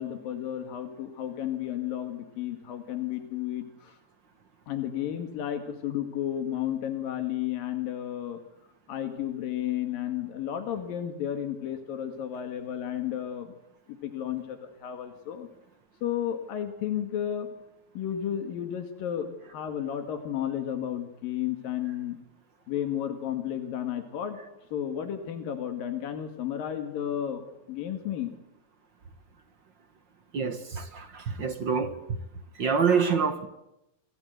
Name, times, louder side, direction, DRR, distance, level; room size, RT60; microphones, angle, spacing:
voice 1, 0.0-4.0 4.7-8.4 8.9-13.5 13.9-15.5 16.0-17.5 18.0-22.2 22.7-24.4 24.7-28.3, left 10 dB, 85° left, 3.6 m, -32 dB
voice 2, 30.3-32.0 32.5-33.5, right 6 dB, 50° right, 1.4 m, -26 dB
29.0 x 23.5 x 8.2 m
omnidirectional pair, 3.9 m